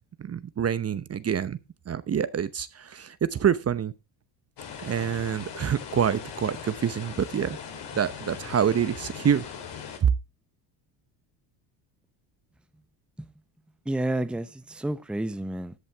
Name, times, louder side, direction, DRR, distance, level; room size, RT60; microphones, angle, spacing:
voice 1, 0.2-1.6 1.9-3.9 4.8-7.6 7.9-9.5 10.0-10.1, right 8 dB, 30° right, 0.9 m, -26 dB
sound 1, 4.6-10.0, left 7 dB, 60° left, 3.8 m, -40 dB
voice 2, 13.8-15.7, right 1 dB, ahead, 0.8 m, -30 dB
14.0 x 8.1 x 3.4 m
supercardioid pair, 85°, 47 cm